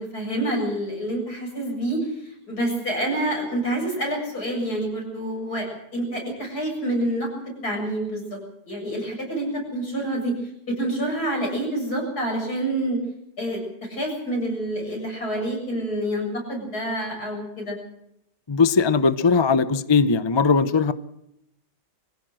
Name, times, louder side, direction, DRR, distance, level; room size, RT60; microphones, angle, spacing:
voice 1, 0.0-5.7 5.9-8.4 8.7-10.3 10.7-13.0 13.4-13.6 13.9-17.8, right 1 dB, 60° left, 0 dB, 8.1 m, -27 dB
voice 2, 18.5-20.9, left 5 dB, 35° left, 13 dB, 0.4 m, -19 dB
24.0 x 16.0 x 7.7 m, 0.79 s
omnidirectional pair, 1.9 m